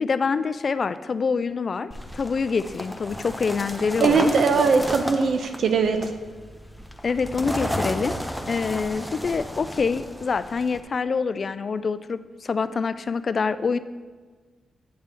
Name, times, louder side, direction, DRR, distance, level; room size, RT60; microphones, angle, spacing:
voice 1, 0.0-4.3 7.0-8.2 8.5-13.8, left 5 dB, 55° left, 14 dB, 0.3 m, -26 dB
sound 1, 1.9-10.8, equal, ahead, 0.8 m, -33 dB
voice 2, 4.0-6.1, right 5 dB, 70° right, 7 dB, 0.8 m, -20 dB
8.7 x 3.4 x 6.7 m, 1.4 s
cardioid pair, 60°, 0 cm